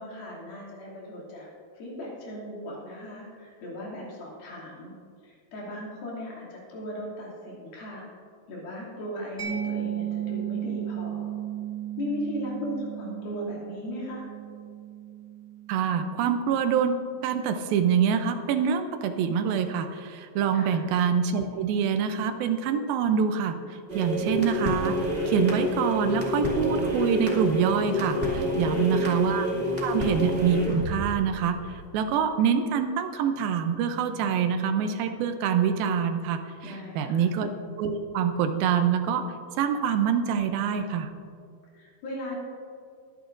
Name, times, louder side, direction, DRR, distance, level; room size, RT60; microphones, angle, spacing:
voice 1, 0.0-1.5 1.7-4.9 5.2-8.1 8.5-11.3 12.0-14.3 20.5-20.8 28.5-29.1 36.6-37.3 41.7-42.4, left 1 dB, 80° left, -5 dB, 4.5 m, -37 dB
Mallet percussion, 9.4-16.8, right 10 dB, ahead, 1.3 m, -35 dB
voice 2, 15.7-17.0 17.2-23.6 23.9-29.5 29.8-37.5 37.8-39.3 39.6-41.1, right 7 dB, 80° right, 8 dB, 2.4 m, -25 dB
sound 1, 23.9-31.9, left 1 dB, 20° right, 1.8 m, -28 dB
21.5 x 10.0 x 2.6 m, 2.3 s
omnidirectional pair, 4.2 m